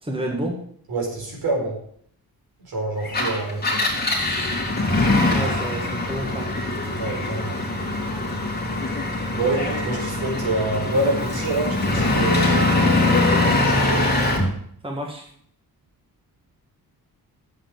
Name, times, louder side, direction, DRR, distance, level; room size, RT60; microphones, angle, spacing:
voice 1, 0.0-0.5 5.3-6.4 14.8-15.2, right 1 dB, 15° right, 1 dB, 1.7 m, -29 dB
voice 2, 0.9-1.8 2.6-4.2 6.9-7.6 9.3-14.1, right 2 dB, 75° right, -1 dB, 4.6 m, -27 dB
Engine, 3.0-14.5, left 2 dB, 25° left, 2.4 m, -22 dB
7.8 x 7.5 x 7.8 m, 0.62 s
wide cardioid pair, 130°, 37 cm